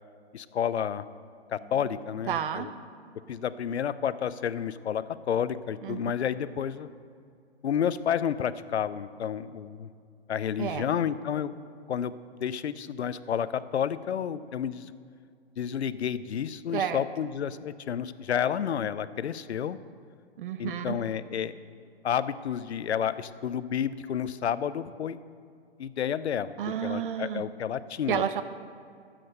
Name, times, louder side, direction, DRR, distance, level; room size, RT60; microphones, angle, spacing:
voice 1, 0.3-1.1 1.5-2.7 3.3-6.9 7.6-9.9 10.3-11.5 11.9-12.1 12.4-14.9 15.6-19.8 20.6-21.5 22.0-25.2 25.8-26.5 26.8-28.2, left 8 dB, 85° left, 15 dB, 0.6 m, -30 dB
sound 1, 1.6-4.9, right 6 dB, 20° right, 2.9 m, -56 dB
voice 2, 2.3-2.7 5.8-6.0 10.6-10.9 16.7-17.0 20.4-21.0 26.6-27.4 28.1-28.4, right 8 dB, 55° right, 11 dB, 0.6 m, -30 dB
12.0 x 7.7 x 6.4 m, 2.3 s
hypercardioid pair, 135°, 32 cm